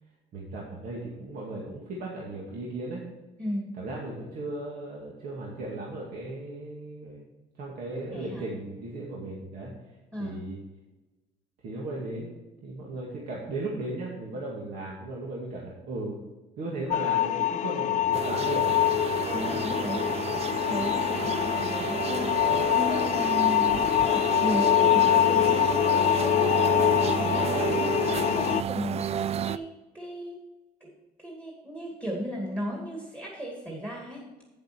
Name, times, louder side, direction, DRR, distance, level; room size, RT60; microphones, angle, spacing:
voice 1, 0.3-3.0 3.8-7.2 7.6-9.7 10.2-10.6 11.6-12.3 12.6-16.2 16.6-19.0 19.4-19.6 20.3-20.5, right 2 dB, 65° right, -3 dB, 2.1 m, -36 dB
voice 2, 3.4-3.8 8.1-8.5 10.1-10.4 19.3-30.4 30.8-30.9 31.2-34.2, equal, 15° right, -2 dB, 2.3 m, -35 dB
sound 1, 16.9-28.6, left 12 dB, 45° left, 0.4 m, -24 dB
sound 2, 18.1-29.6, right 8 dB, 40° right, 0.4 m, -31 dB
8.9 x 7.8 x 4.4 m, 1.1 s
cardioid pair, 110°, 17 cm